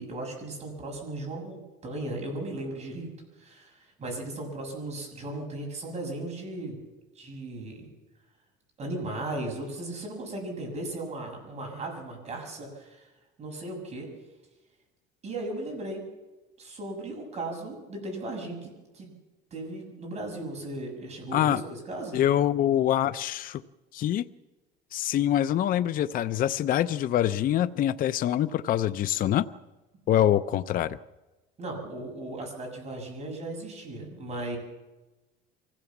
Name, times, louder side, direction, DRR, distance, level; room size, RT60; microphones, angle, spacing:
voice 1, 0.0-3.1 3.4-6.8 7.2-7.9 8.8-13.1 13.4-14.1 15.2-16.1 16.6-19.1 19.5-22.2 31.6-34.6, right 2 dB, 30° right, 1 dB, 6.9 m, -36 dB
voice 2, 22.1-23.6 23.9-24.2 24.9-29.5 30.1-31.0, left 11 dB, 40° left, 12 dB, 0.6 m, -25 dB
24.5 x 16.0 x 7.2 m, 1.1 s
cardioid pair, 145°, 21 cm